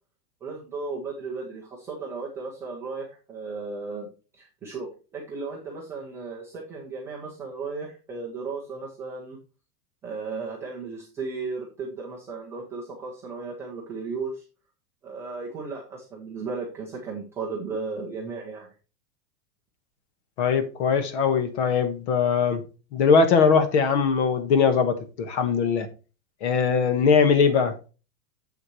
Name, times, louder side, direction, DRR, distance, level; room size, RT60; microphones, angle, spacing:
voice 1, 0.4-4.1 4.3-9.4 10.0-14.4 15.0-18.7, right 4 dB, 5° right, 0.5 m, -35 dB
voice 2, 20.4-22.6 22.9-25.9 26.4-27.9, left 5 dB, 50° left, 1.4 m, -21 dB
7.6 x 6.5 x 3.1 m
supercardioid pair, 175°, 45 cm